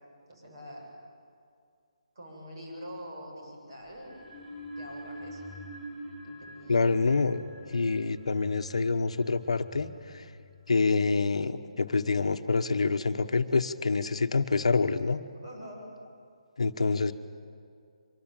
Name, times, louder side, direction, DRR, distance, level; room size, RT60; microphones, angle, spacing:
voice 1, 0.3-0.9 2.1-4.2 4.8-5.4 6.2-6.8 15.4-15.9, equal, 40° right, 0 dB, 7.7 m, -44 dB
sound 1, 3.9-10.8, equal, ahead, 7.1 m, -46 dB
voice 2, 6.7-7.4 7.7-10.2 10.7-15.2 16.6-17.1, left 4 dB, 70° left, 9 dB, 1.2 m, -26 dB
24.5 x 23.5 x 9.0 m, 2.3 s
hypercardioid pair, 180°, 4 cm